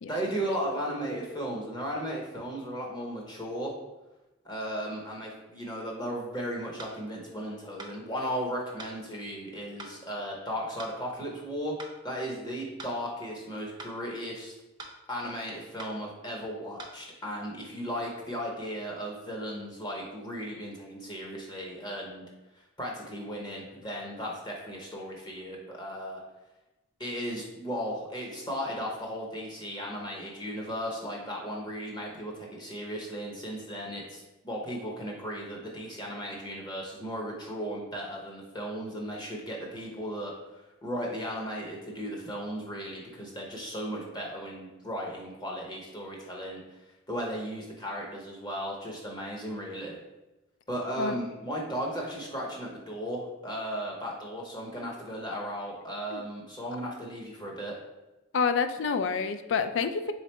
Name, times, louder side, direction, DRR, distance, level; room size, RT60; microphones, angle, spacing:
voice 1, 0.1-3.7 4.4-11.7 12.0-14.5 15.1-22.2 22.8-26.2 27.0-46.8 47.1-50.0 50.7-57.8, equal, 20° left, -2 dB, 0.7 m, -36 dB
sound 1, 6.8-7.0 7.8-8.0 8.8-9.0 9.8-10.0 10.8-11.0 11.8-12.0 12.8-13.0 13.8-14.0 14.8-15.0 15.8-16.0 16.8-17.0, right 2 dB, 20° right, 0.4 m, -43 dB
voice 2, 58.3-60.1, left 5 dB, 75° left, 9 dB, 0.3 m, -28 dB
3.7 x 3.2 x 4.3 m, 1.0 s
head